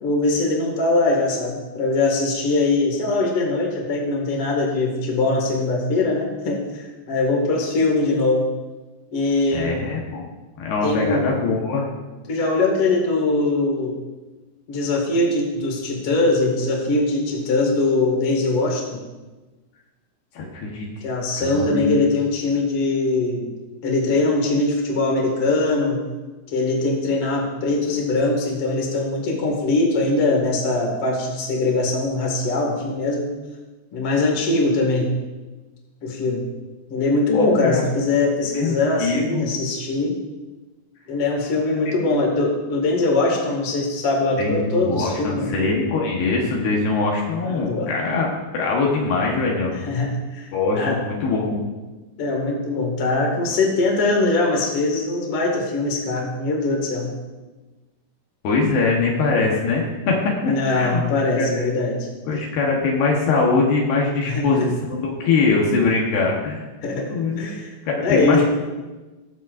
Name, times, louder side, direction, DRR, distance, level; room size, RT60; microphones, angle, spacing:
voice 1, 0.0-8.5 9.1-9.8 10.8-11.2 12.3-13.9 14.7-19.0 21.0-23.5 23.8-26.0 26.5-33.3 33.9-35.1 36.0-36.4 36.9-40.1 41.1-45.7 47.4-47.9 49.8-51.0 52.2-57.1 60.4-62.1 64.3-64.4 66.8-67.7 68.0-68.4, left 2 dB, 40° left, -1 dB, 2.4 m, -22 dB
voice 2, 9.5-10.3 10.6-11.9 20.3-20.9 21.4-22.0 37.3-38.0 38.5-39.5 41.9-42.0 44.4-48.3 48.5-49.7 50.5-51.6 58.4-60.2 60.4-61.0 61.4-61.5 62.3-66.6 67.1-67.4 67.9-68.4, left 4 dB, 75° left, -2 dB, 3.3 m, -22 dB
21.0 x 7.3 x 2.6 m, 1.2 s
omnidirectional pair, 4.9 m